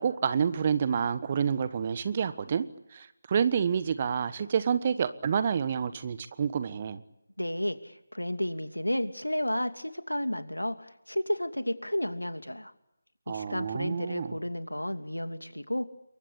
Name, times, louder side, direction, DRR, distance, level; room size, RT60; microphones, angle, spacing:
voice 1, 0.0-2.7 2.9-7.0 13.3-14.4, right 7 dB, 25° right, 14 dB, 1.2 m, -28 dB
voice 2, 7.4-12.7 13.3-15.8, left 1 dB, 85° left, 9 dB, 2.8 m, -32 dB
28.5 x 23.0 x 8.8 m, 0.88 s
figure-of-eight pair, 160°, 0 cm